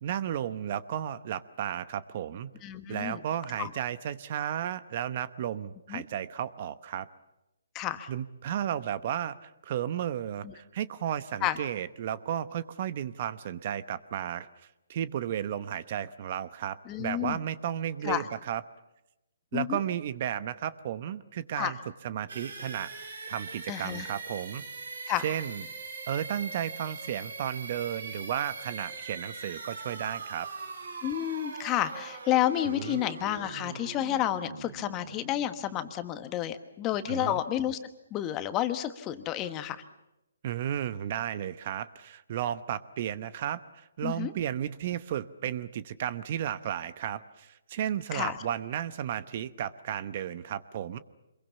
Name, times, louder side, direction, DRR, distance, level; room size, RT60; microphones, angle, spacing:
voice 1, 0.0-2.5 2.9-7.1 8.1-14.5 14.9-18.6 19.5-21.8 22.0-22.9 23.3-24.6 25.2-25.6 26.1-30.5 32.8-33.0 37.1-37.4 40.4-51.0, right 10 dB, 40° right, 15 dB, 0.9 m, -33 dB
voice 2, 2.6-3.2 3.6-3.7 5.9-6.0 7.7-8.1 10.4-10.5 11.4-11.6 16.9-17.4 18.0-18.3 19.5-19.8 21.6-21.7 23.7-24.1 25.1-25.3 31.0-37.8 38.1-39.8 44.0-44.3 48.1-48.4, left 12 dB, 20° left, 10 dB, 1.3 m, -30 dB
sound 1, 22.3-36.0, right 4 dB, 80° right, 5.1 m, -41 dB
26.5 x 22.5 x 7.1 m, 0.93 s
hypercardioid pair, 155°, 0 cm